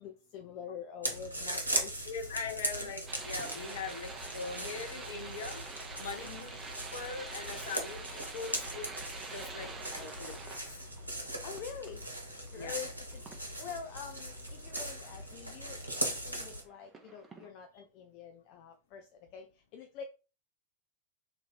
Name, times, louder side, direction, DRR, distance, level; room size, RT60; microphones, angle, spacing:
voice 1, 0.0-1.9 2.8-2.9 6.2-6.5 11.4-12.0 12.5-20.0, left 7 dB, 45° left, 4 dB, 0.5 m, -46 dB
sound 1, 1.0-16.6, right 1 dB, 85° right, 0.9 m, -39 dB
voice 2, 2.1-5.6 6.0-6.6 6.9-8.9 9.3-10.8 12.5-12.8, left 4 dB, 60° left, 5 dB, 0.9 m, -41 dB
sound 2, 3.1-16.5 16.9-17.5, right 3 dB, 20° right, 0.8 m, -47 dB
3.0 x 2.8 x 4.0 m, 0.32 s
figure-of-eight pair, 90°, 0 cm